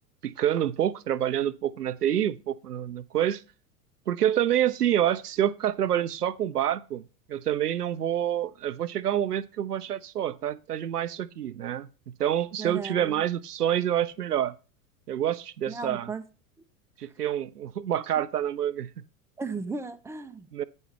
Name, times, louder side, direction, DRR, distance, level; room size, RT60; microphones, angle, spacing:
voice 1, 0.2-3.4 4.1-7.0 7.3-14.5 15.1-16.1 17.0-18.9 20.5-20.6, right 10 dB, 80° right, 0.7 m, -27 dB
voice 2, 12.6-13.2 15.7-16.2 19.4-20.5, right 4 dB, 5° right, 0.5 m, -35 dB
8.7 x 5.3 x 4.6 m
figure-of-eight pair, 85°, 46 cm